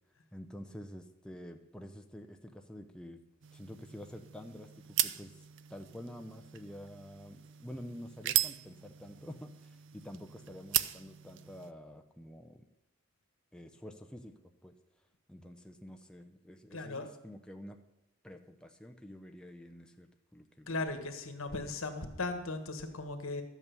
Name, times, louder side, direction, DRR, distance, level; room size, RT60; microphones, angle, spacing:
voice 1, 0.3-3.2 3.5-5.4 5.7-12.7 13.5-14.3 14.6-14.8 15.3-17.8 18.2-20.8, equal, 5° left, 5 dB, 0.7 m, -48 dB
sound 1, 3.4-11.7, right 13 dB, 60° right, 0.5 m, -38 dB
voice 2, 16.7-17.1 20.7-23.4, left 3 dB, 80° left, 7 dB, 1.6 m, -37 dB
12.5 x 8.4 x 7.0 m, 0.93 s
head